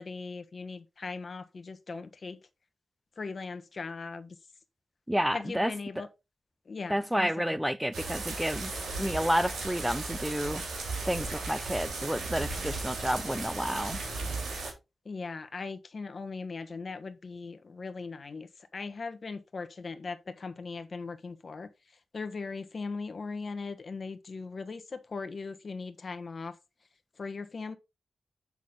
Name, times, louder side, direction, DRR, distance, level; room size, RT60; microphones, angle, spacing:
voice 1, 0.0-2.4 3.2-4.4 5.3-6.1 6.6-7.6 15.0-26.6 27.2-27.7, left 4 dB, 55° left, 1.2 m, -39 dB
voice 2, 5.1-5.7 6.9-8.7 9.0-10.6 11.0-14.0, equal, 5° right, 0.7 m, -30 dB
sound 1, 7.9-14.7, right 3 dB, 85° right, 3.1 m, -36 dB
7.2 x 6.1 x 3.8 m
cardioid pair, 55°, 0 cm